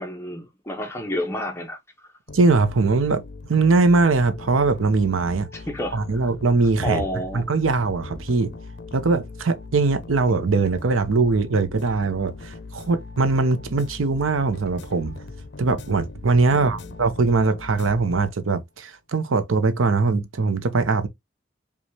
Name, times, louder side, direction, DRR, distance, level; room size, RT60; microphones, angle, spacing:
voice 1, 0.0-1.8 5.5-6.0 6.8-7.5 16.5-16.9, left 1 dB, 15° left, 0.8 m, -30 dB
sound 1, 2.3-18.7, left 3 dB, 55° left, 0.6 m, -40 dB
voice 2, 2.3-3.2 3.5-5.5 5.9-7.0 7.3-8.6 8.9-15.3 15.6-21.1, right 3 dB, 85° right, 0.7 m, -21 dB
5.1 x 2.4 x 3.2 m
head